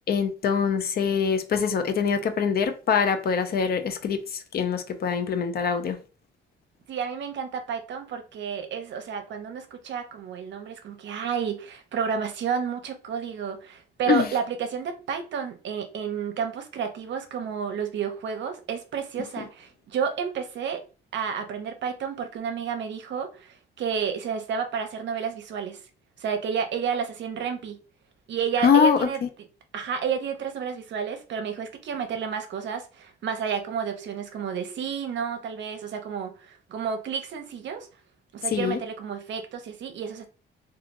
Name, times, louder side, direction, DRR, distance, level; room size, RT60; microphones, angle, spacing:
voice 1, 0.1-6.0 14.1-14.3 19.4-19.5 28.6-29.1 38.5-38.8, left 6 dB, 50° left, 0.5 m, -24 dB
voice 2, 6.9-20.8 21.1-25.8 26.2-27.8 28.3-29.2 29.7-37.9 38.3-40.3, right 7 dB, 65° right, 0.6 m, -31 dB
2.8 x 2.4 x 2.5 m
cardioid pair, 90°, 20 cm